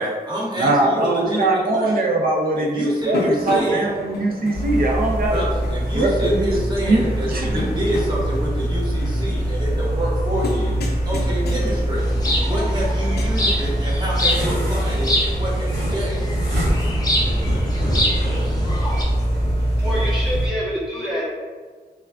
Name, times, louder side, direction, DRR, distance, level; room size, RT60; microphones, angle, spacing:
voice 1, 0.0-2.1 2.6-3.9 5.3-10.8 11.0-12.0 12.4-16.2, right 1 dB, 25° right, -6 dB, 0.8 m, -27 dB
voice 2, 0.6-5.5 5.9-6.5 6.9-7.6, right 2 dB, 65° right, 0 dB, 0.4 m, -21 dB
sound 1, 3.0-13.8, left 3 dB, 85° left, 0.4 m, -34 dB
sound 2, 4.5-20.5, right 1 dB, 90° right, 1.0 m, -23 dB
sound 3, 12.0-19.0, left 1 dB, 25° left, 0.5 m, -26 dB
voice 3, 19.8-21.3, equal, 5° right, -7 dB, 1.0 m, -26 dB
3.3 x 2.1 x 2.4 m, 1.5 s
wide cardioid pair, 130°, 17 cm